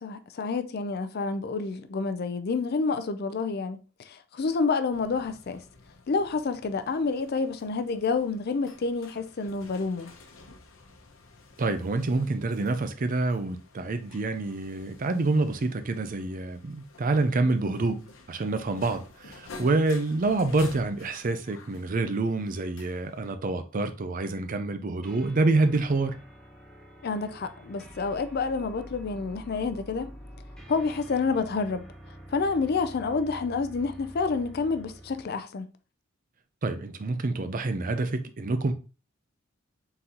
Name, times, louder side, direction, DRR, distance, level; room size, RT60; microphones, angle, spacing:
voice 1, 0.0-5.6 6.1-10.1 27.0-30.1 30.7-31.9 32.3-35.7, left 4 dB, 50° left, 0.4 m, -29 dB
sound 1, 4.9-23.3, left 3 dB, 80° left, 0.8 m, -51 dB
voice 2, 11.6-18.0 18.3-26.1 36.6-38.7, right 3 dB, 40° right, 0.5 m, -27 dB
sound 2, 25.0-35.4, equal, 5° left, 0.8 m, -47 dB
3.9 x 3.9 x 2.8 m
head